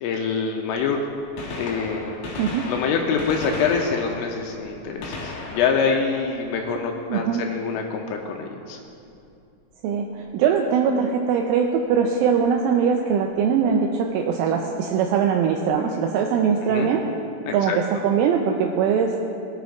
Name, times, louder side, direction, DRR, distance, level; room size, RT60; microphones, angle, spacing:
voice 1, 0.0-1.0 1.6-2.3 2.7-8.8 16.6-16.9 17.5-17.8, left 5 dB, 85° left, 2 dB, 3.1 m, -25 dB
Gunshot gunfire, 1.2-7.1 9.0-9.2 10.2-10.3 11.9-12.0 13.4-13.5 13.6-13.7, left 3 dB, 60° left, 2.9 m, -36 dB
voice 2, 7.1-7.4 9.8-17.0 17.5-19.2, right 7 dB, 85° right, 2 dB, 3.0 m, -21 dB
18.5 x 10.5 x 2.4 m, 2.6 s
omnidirectional pair, 5.9 m